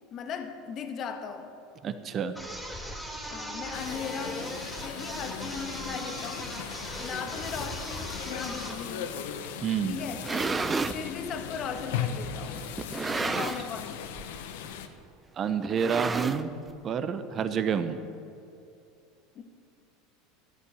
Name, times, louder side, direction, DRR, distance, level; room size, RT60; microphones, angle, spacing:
voice 1, 0.1-1.6 3.3-6.5 7.0-9.2 9.9-10.3 10.9-12.7 13.1-14.1 19.3-19.4, left 6 dB, 45° left, 7 dB, 1.4 m, -38 dB
voice 2, 1.8-2.4 9.6-10.0 13.3-13.4 15.4-16.5 16.8-18.0, right 7 dB, 40° right, 10 dB, 1.0 m, -29 dB
sound 1, 2.4-8.8, equal, ahead, 3.1 m, -39 dB
sound 2, 3.7-14.9, left 8 dB, 65° left, 1.0 m, -38 dB
sound 3, 10.0-11.0 11.8-11.9 12.8-13.8 14.1-14.4 14.6-14.7 15.6-16.7, right 4 dB, 20° right, 0.7 m, -31 dB
13.5 x 11.0 x 6.5 m, 2.7 s
hypercardioid pair, 75°, 0 cm